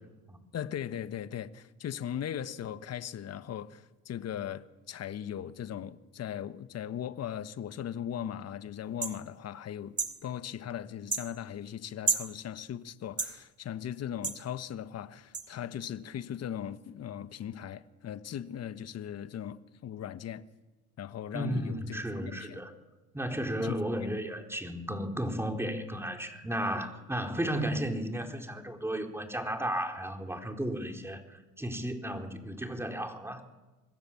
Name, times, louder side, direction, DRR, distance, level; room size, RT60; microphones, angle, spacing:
voice 1, 0.5-10.0 10.2-19.6 19.8-20.4 21.0-22.6 23.6-23.8, left 10 dB, 45° left, 1.4 m, -38 dB
sound 1, 9.0-9.2 10.0-10.2 11.1-11.3 12.1-12.3 13.2-13.3 14.2-14.4 15.3-15.4, right 4 dB, 20° right, 2.5 m, -30 dB
voice 2, 21.3-22.7 23.1-33.4, right 1 dB, 5° right, 4.0 m, -34 dB
26.0 x 21.5 x 7.3 m
supercardioid pair, 80°, 34 cm